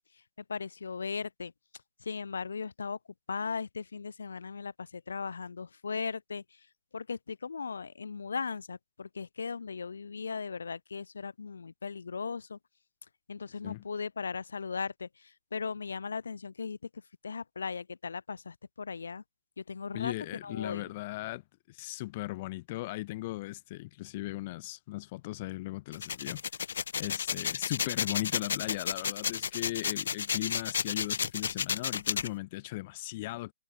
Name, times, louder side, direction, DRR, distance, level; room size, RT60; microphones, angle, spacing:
voice 1, 0.5-1.5 2.0-3.0 3.3-6.7 6.9-12.6 13.3-19.2 19.6-20.1 20.4-20.9, left 5 dB, 65° left, 7.7 m, -38 dB
voice 2, 19.9-21.4 21.7-26.4 27.0-33.5, left 19 dB, 20° left, 4.0 m, -37 dB
sound 1, 25.9-32.3, left 7 dB, 45° left, 1.2 m, -32 dB
hypercardioid pair, 175°, 0 cm